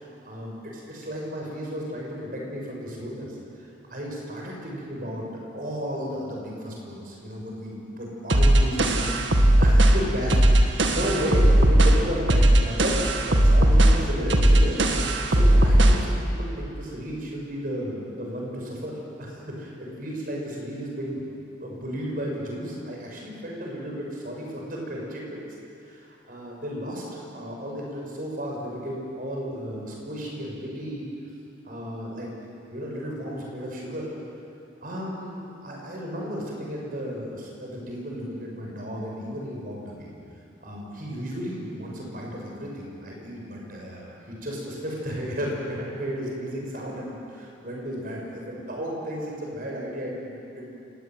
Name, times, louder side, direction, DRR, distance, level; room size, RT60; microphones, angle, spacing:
voice 1, 0.0-3.4 3.9-5.2 5.5-9.3 9.6-25.4 25.8-27.0 27.3-31.1 31.6-32.3 32.7-34.1 34.8-40.1 40.6-50.8, equal, 50° right, -2 dB, 7.4 m, -34 dB
sound 1, 8.3-16.1, right 1 dB, 80° right, 2.0 m, -18 dB
28.5 x 17.5 x 9.7 m, 2.7 s
head